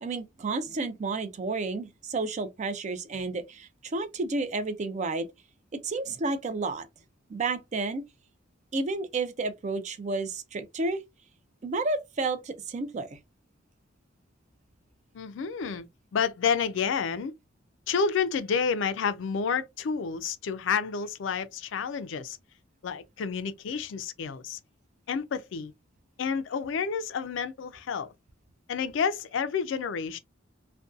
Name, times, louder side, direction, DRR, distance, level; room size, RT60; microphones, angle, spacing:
voice 1, 0.0-5.3 5.8-6.9 7.3-8.0 8.7-11.0 11.6-13.2, right 3 dB, 35° right, 0.4 m, -31 dB
voice 2, 15.1-15.8 16.1-17.3 17.9-22.4 22.8-24.6 25.1-25.7 26.2-28.1 28.7-30.2, left 6 dB, 65° left, 0.4 m, -29 dB
2.5 x 2.2 x 2.3 m
head